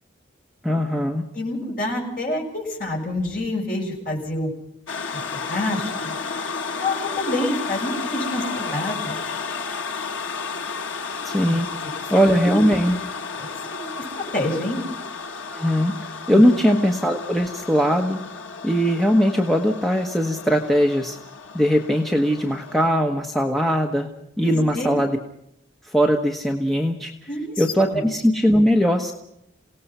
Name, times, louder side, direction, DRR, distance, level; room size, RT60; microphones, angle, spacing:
voice 1, 0.6-1.2 11.2-11.7 12.1-13.0 15.5-15.9 16.3-18.2 18.6-21.2 21.5-24.1 24.4-25.2 25.8-27.1 27.6-29.1, equal, ahead, 1 dB, 1.1 m, -20 dB
voice 2, 1.3-4.5 5.5-6.1 6.8-9.2 12.4-12.6 13.4-14.0 14.3-14.8 16.3-16.4 24.4-24.9 27.3-28.0, left 1 dB, 45° left, -1 dB, 6.7 m, -27 dB
sound 1, 4.9-22.9, left 5 dB, 80° left, 1.2 m, -32 dB
28.0 x 18.0 x 5.6 m, 0.78 s
head